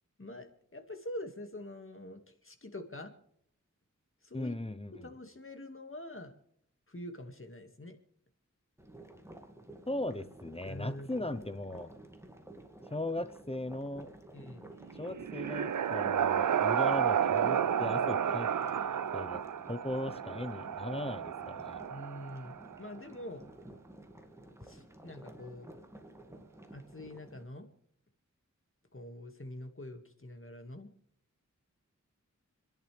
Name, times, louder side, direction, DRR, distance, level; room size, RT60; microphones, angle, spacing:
voice 1, 0.2-3.1 4.2-4.5 5.0-6.3 6.9-8.0 10.7-11.3 14.3-14.7 21.9-23.4 24.6-25.7 26.7-27.7 28.9-30.9, left 1 dB, 45° left, 6 dB, 2.2 m, -45 dB
voice 2, 4.3-5.1 9.9-11.9 12.9-14.1 15.0-18.5 19.1-19.4 19.7-21.8, left 1 dB, 20° left, 12 dB, 0.9 m, -38 dB
sound 1, 8.8-27.4, right 1 dB, 10° right, 2.2 m, -52 dB
sound 2, 14.9-22.7, right 8 dB, 80° right, 0.5 m, -31 dB
29.5 x 10.5 x 3.5 m, 0.69 s
wide cardioid pair, 55°, 30 cm